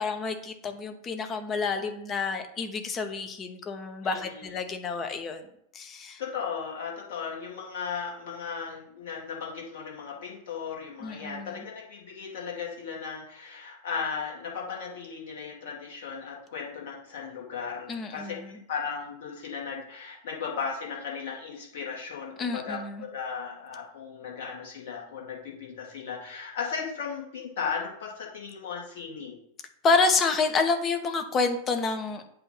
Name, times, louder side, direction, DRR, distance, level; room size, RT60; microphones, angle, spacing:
voice 1, 0.0-5.4 5.7-6.2 11.0-11.6 17.9-18.5 22.4-23.0 29.8-32.2, left 4 dB, 25° left, 7 dB, 0.8 m, -28 dB
voice 2, 4.0-4.5 6.2-29.4, left 6 dB, 55° left, -2 dB, 1.9 m, -36 dB
8.0 x 2.8 x 5.7 m, 0.73 s
figure-of-eight pair, 90°, 0 cm